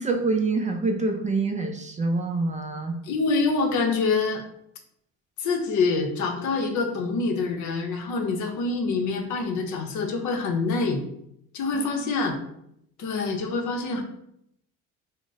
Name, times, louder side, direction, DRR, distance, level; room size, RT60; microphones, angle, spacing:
voice 1, 0.0-3.0 11.8-11.9, right 3 dB, 25° right, 4 dB, 0.4 m, -26 dB
voice 2, 3.0-4.4 5.4-11.0 11.5-12.4 13.0-14.0, left 4 dB, 65° left, 4 dB, 0.7 m, -26 dB
2.5 x 2.1 x 3.8 m, 0.74 s
supercardioid pair, 75°, 33 cm